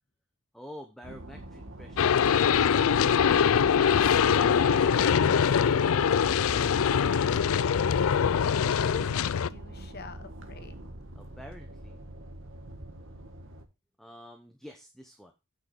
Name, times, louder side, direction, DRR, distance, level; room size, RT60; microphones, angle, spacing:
voice 1, 0.5-2.9 11.1-12.0 14.0-15.3, equal, ahead, 4 dB, 1.0 m, -49 dB
sound 1, 1.0-13.6, right 1 dB, 60° right, 1.5 m, -44 dB
sound 2, 2.0-9.5, left 7 dB, 75° left, 0.4 m, -23 dB
voice 2, 3.3-4.2 8.2-10.9, left 3 dB, 45° left, 10 dB, 1.2 m, -46 dB
8.9 x 6.3 x 5.3 m, 0.26 s
head